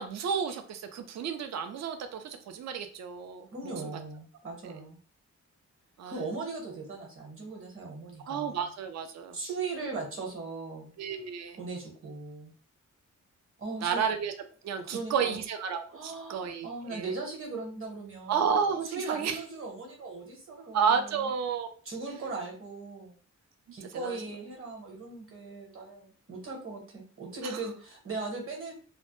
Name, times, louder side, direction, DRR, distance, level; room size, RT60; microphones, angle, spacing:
voice 1, 0.0-3.5 3.8-3.9 4.6-4.7 6.0-6.1 8.3-9.4 11.0-11.6 13.8-14.3 14.6-17.1 18.3-19.4 20.7-21.7 24.0-24.2 27.5-27.6, right 6 dB, 60° right, 8 dB, 0.4 m, -31 dB
voice 2, 3.5-5.0 6.1-8.6 9.3-10.9 11.6-12.5 13.6-14.0 14.8-15.4 15.9-18.5 18.8-21.3 21.8-23.2 23.7-28.7, right 3 dB, 45° right, 0 dB, 1.0 m, -39 dB
2.0 x 2.0 x 2.9 m, 0.42 s
cardioid pair, 95°, 30 cm